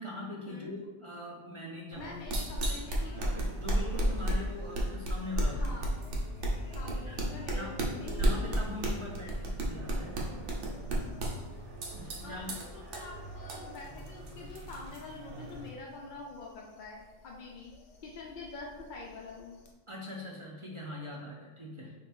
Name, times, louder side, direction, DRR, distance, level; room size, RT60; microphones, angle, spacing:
voice 1, 0.0-2.2 3.6-5.7 7.1-7.2 7.5-7.8 8.2-10.1 11.9-12.5 19.9-21.9, left 1 dB, 45° right, -2 dB, 0.4 m, -42 dB
sound 1, 1.9-15.7, right 1 dB, 70° right, 1.1 m, -34 dB
sound 2, 2.0-19.7, left 4 dB, 75° left, 1.1 m, -56 dB
voice 2, 2.0-3.5 5.5-5.9 6.7-8.6 12.2-17.7 18.0-19.6 21.8-21.9, left 3 dB, 55° left, -2 dB, 0.5 m, -46 dB
sound 3, 9.8-14.9, equal, 30° left, 1.1 m, -50 dB
3.5 x 3.3 x 4.2 m, 1.2 s
omnidirectional pair, 1.3 m